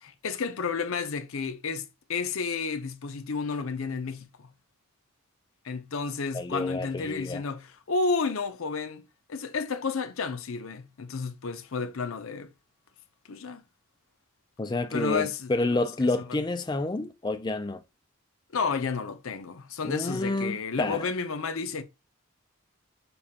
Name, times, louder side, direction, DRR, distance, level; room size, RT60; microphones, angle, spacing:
voice 1, 0.0-4.5 5.6-12.5 13.3-13.6 14.9-16.1 18.5-21.8, left 4 dB, 70° left, 0.6 m, -31 dB
voice 2, 6.3-7.4 14.6-17.8 19.8-21.1, left 2 dB, 20° left, 0.4 m, -29 dB
6.8 x 2.3 x 2.8 m
head